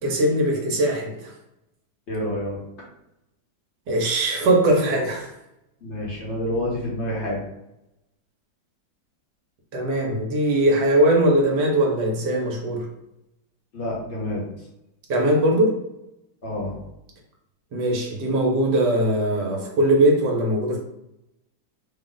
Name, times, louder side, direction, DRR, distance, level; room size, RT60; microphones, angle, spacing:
voice 1, 0.0-1.3 3.9-5.3 9.7-12.9 15.1-15.7 17.7-20.8, right 1 dB, 65° right, 0 dB, 1.3 m, -20 dB
voice 2, 2.1-2.6 5.8-7.4 13.7-14.4 16.4-16.8, left 1 dB, 40° left, -4 dB, 1.2 m, -28 dB
3.6 x 2.4 x 3.8 m, 0.87 s
omnidirectional pair, 2.1 m